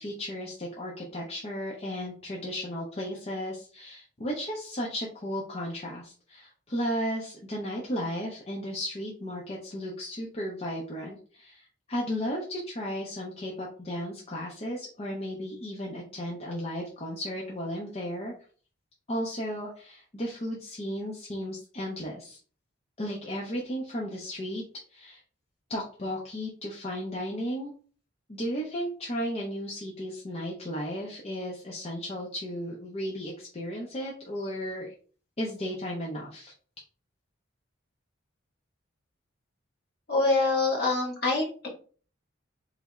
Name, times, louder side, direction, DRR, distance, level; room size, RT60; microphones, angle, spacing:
voice 1, 0.0-18.3 19.1-22.4 23.0-24.6 24.9-25.2 25.7-27.7 28.3-34.9 35.4-36.5, equal, 30° left, -3 dB, 0.6 m, -34 dB
voice 2, 40.1-41.7, left 3 dB, 50° left, -3 dB, 1.5 m, -25 dB
4.0 x 3.2 x 2.4 m, 0.41 s
head